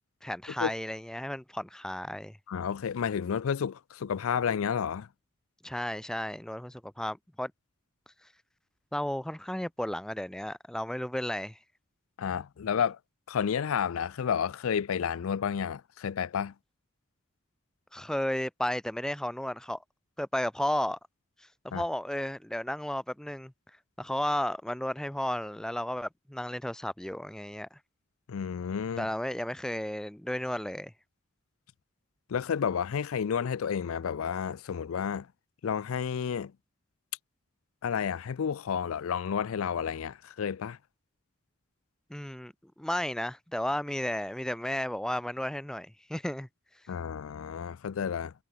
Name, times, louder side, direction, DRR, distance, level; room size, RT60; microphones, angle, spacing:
voice 1, 0.2-2.4 5.6-7.5 8.9-11.6 17.9-19.8 20.2-21.0 21.6-23.5 24.0-27.8 29.0-30.9 42.1-42.5 42.8-46.5, left 1 dB, 5° left, 0.3 m, -33 dB
voice 2, 2.5-5.1 12.2-13.0 13.3-16.5 21.7-21.8 28.3-29.1 32.3-35.3 35.6-36.5 37.8-40.8 46.9-48.3, left 7 dB, 85° left, 0.4 m, -31 dB
head